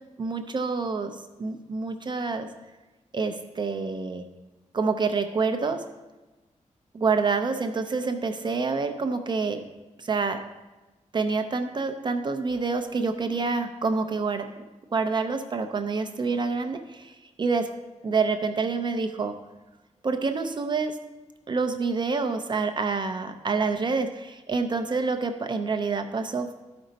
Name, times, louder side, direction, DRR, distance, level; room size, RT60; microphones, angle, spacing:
voice 1, 0.2-2.5 3.1-4.2 4.7-5.9 6.9-9.6 10.0-10.4 11.1-14.5 14.9-17.1 17.4-17.7 18.0-19.4 20.0-21.0 21.5-26.5, right 4 dB, 35° right, 7 dB, 0.5 m, -27 dB
13.0 x 5.2 x 4.0 m, 1.1 s
wide cardioid pair, 175°, 13 cm